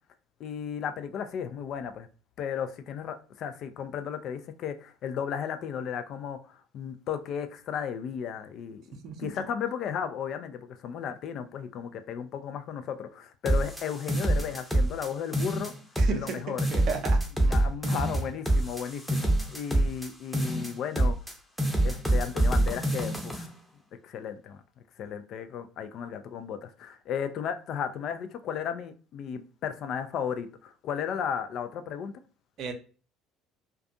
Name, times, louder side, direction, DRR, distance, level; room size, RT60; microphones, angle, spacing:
voice 1, 0.4-2.1 2.4-6.4 6.7-15.7 16.1-16.6 17.4-21.2 21.8-23.5 24.0-24.6 25.0-32.1, left 8 dB, 55° left, 0.3 m, -34 dB
sound 1, 13.4-15.1 15.3-16.3 16.6-20.1 20.3-21.3 21.6-23.5, right 1 dB, 5° left, 0.7 m, -26 dB
voice 2, 16.0-16.4 16.7-17.2 32.6-32.7, right 5 dB, 55° right, 0.5 m, -33 dB
2.5 x 2.2 x 2.5 m
hypercardioid pair, 60°, 0 cm